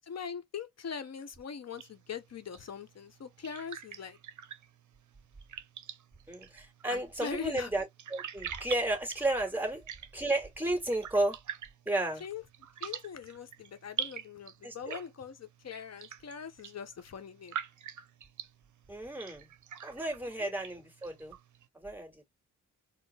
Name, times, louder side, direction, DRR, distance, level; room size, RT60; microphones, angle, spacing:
voice 1, 0.1-4.2 6.9-7.7 12.2-12.4 12.8-17.6 20.2-20.5, left 6 dB, 50° left, 0.9 m, -42 dB
sound 1, 1.8-21.7, right 8 dB, 60° right, 0.6 m, -46 dB
voice 2, 6.3-7.8 8.1-9.8 10.1-11.4 11.9-12.2 14.6-15.0 18.9-19.5 19.8-21.3 21.7-22.3, right 1 dB, 5° right, 2.1 m, -33 dB
4.3 x 2.1 x 3.3 m
cardioid pair, 80°, 34 cm